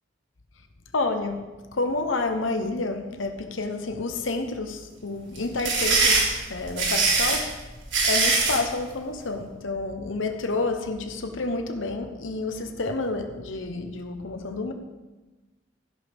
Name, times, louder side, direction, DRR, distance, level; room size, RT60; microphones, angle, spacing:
voice 1, 0.9-1.5 1.7-6.2 6.5-7.5 8.0-14.7, left 3 dB, 85° left, 6 dB, 1.1 m, -29 dB
sound 1, 5.3-8.6, right 3 dB, 70° right, 3.2 m, -22 dB
15.0 x 11.0 x 3.6 m, 1.2 s
head